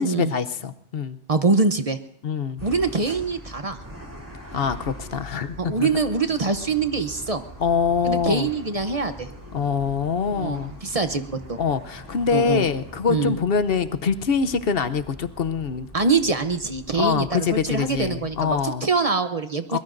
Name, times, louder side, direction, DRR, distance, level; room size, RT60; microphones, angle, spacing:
voice 1, 0.0-1.2 2.2-2.6 4.5-5.9 7.6-8.5 9.5-10.7 11.6-15.9 16.9-18.8 19.7-19.8, left 6 dB, 70° left, 10 dB, 1.0 m, -24 dB
voice 2, 1.3-2.0 2.6-3.8 5.6-7.4 8.0-9.3 10.3-11.6 12.3-12.6 13.1-13.3 15.9-19.8, right 4 dB, 40° right, 9 dB, 0.8 m, -24 dB
sound 1, 2.6-18.7, equal, 20° right, 3.1 m, -42 dB
23.0 x 21.5 x 2.6 m, 0.80 s
omnidirectional pair, 1.1 m